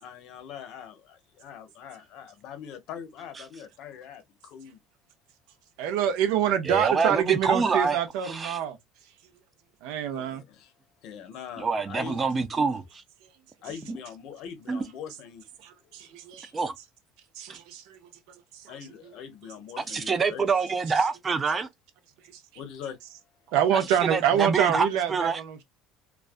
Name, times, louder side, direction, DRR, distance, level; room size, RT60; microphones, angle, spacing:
voice 1, 0.0-4.8 10.1-10.7 11.0-12.2 13.6-15.4 15.9-16.1 18.7-20.5 22.5-23.0, left 8 dB, 55° left, 0.6 m, -42 dB
voice 2, 5.8-9.1 9.8-10.4 13.2-13.3 15.6-16.5 17.3-18.8 19.0-19.1 19.9-20.0 22.2-22.6 23.5-25.6, right 9 dB, 75° right, 0.5 m, -27 dB
voice 3, 6.7-8.0 8.3-8.6 11.6-13.0 13.9-14.0 14.7-14.8 16.5-16.7 17.5-17.6 19.9-21.7 24.1-25.4, right 4 dB, 20° right, 0.3 m, -26 dB
2.3 x 2.2 x 2.4 m
cardioid pair, 150°, 0 cm